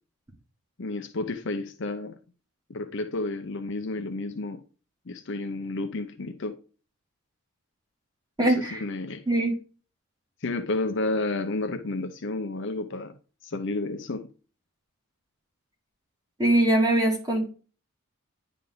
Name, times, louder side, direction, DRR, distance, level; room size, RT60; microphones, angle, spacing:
voice 1, 0.8-2.1 2.7-4.6 5.1-6.5 8.4-9.2 10.4-13.1 13.4-14.3, left 2 dB, 55° left, 0.7 m, -31 dB
voice 2, 8.4-8.8 9.3-9.5 16.4-17.5, right 1 dB, 15° right, 2.4 m, -22 dB
10.0 x 3.7 x 3.8 m
head